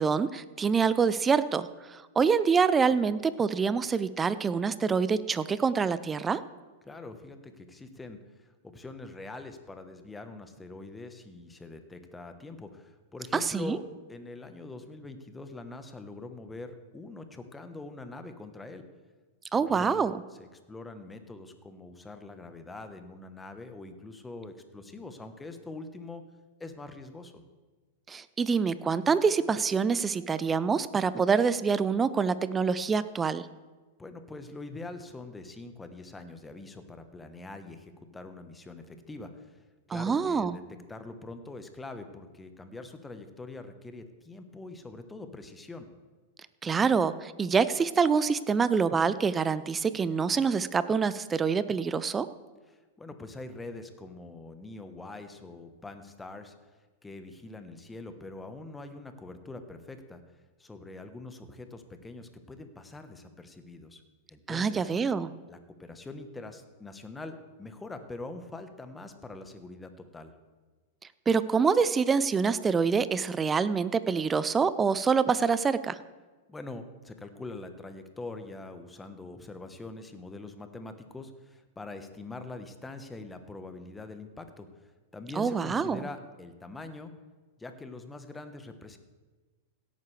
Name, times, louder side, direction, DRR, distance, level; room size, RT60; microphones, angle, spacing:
voice 1, 0.0-6.4 13.3-13.8 19.5-20.2 28.1-33.5 39.9-40.6 46.6-52.3 64.5-65.3 71.3-76.0 85.4-86.0, right 5 dB, 20° right, 15 dB, 0.5 m, -26 dB
voice 2, 6.8-13.8 14.1-18.8 19.5-26.2 26.6-27.4 34.0-39.6 39.9-40.6 40.9-45.9 52.7-56.5 57.0-60.2 60.6-64.0 64.3-64.9 65.5-70.3 76.5-87.1 87.6-89.0, left 2 dB, 10° left, 8 dB, 1.1 m, -44 dB
17.0 x 9.4 x 3.4 m, 1.3 s
hypercardioid pair, 105°, 0 cm